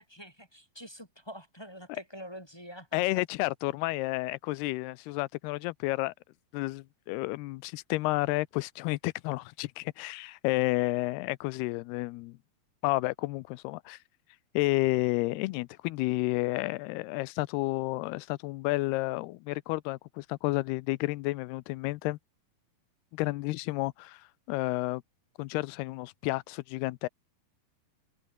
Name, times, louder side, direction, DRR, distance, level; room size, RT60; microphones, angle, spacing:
voice 1, 0.0-3.0, equal, 5° left, 7.5 m, -46 dB
voice 2, 2.9-6.1 6.5-12.4 12.8-14.0 14.5-22.2 23.1-24.2 24.5-25.0 25.4-27.1, left 21 dB, 85° left, 2.7 m, -31 dB
omnidirectional pair, 4.6 m